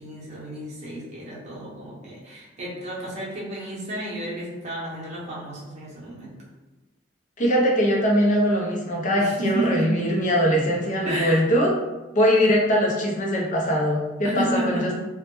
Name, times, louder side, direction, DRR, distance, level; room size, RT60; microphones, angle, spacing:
voice 1, 0.0-6.3 9.2-9.9 11.0-11.5 14.2-14.9, right 1 dB, 40° right, -6 dB, 0.7 m, -31 dB
voice 2, 7.4-11.7 12.1-14.9, equal, 40° left, -2 dB, 0.5 m, -21 dB
2.1 x 2.1 x 3.0 m, 1.1 s
head